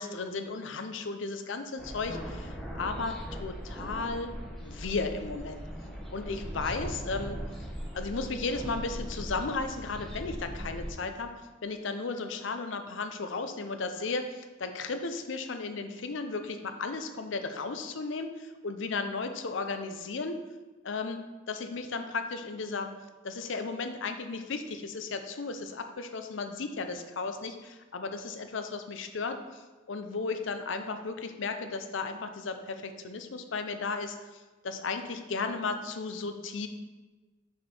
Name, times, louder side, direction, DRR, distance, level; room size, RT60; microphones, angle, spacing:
voice 1, 0.0-4.3 4.6-5.6 6.1-7.4 7.9-11.3 11.6-20.4 20.8-22.9 23.2-36.7, left 4 dB, 65° left, 7 dB, 0.6 m, -35 dB
sound 1, 1.8-10.9, equal, ahead, 2.2 m, -39 dB
6.2 x 4.4 x 4.3 m, 1.2 s
head